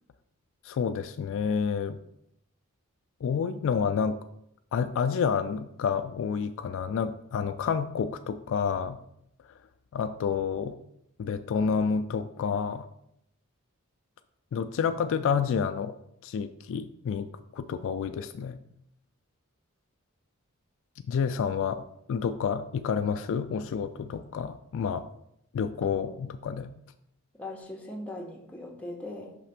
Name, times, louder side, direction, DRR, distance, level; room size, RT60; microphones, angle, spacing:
voice 1, 0.6-2.0 3.2-4.2 4.7-9.0 9.9-10.8 11.2-12.9 14.5-16.0 16.2-17.3 17.5-18.6 21.1-25.1 25.5-26.7, left 6 dB, 60° left, 9 dB, 0.3 m, -29 dB
voice 2, 25.8-26.3 27.3-29.4, left 1 dB, 5° left, 0 dB, 1.0 m, -40 dB
6.0 x 3.2 x 5.7 m, 0.76 s
head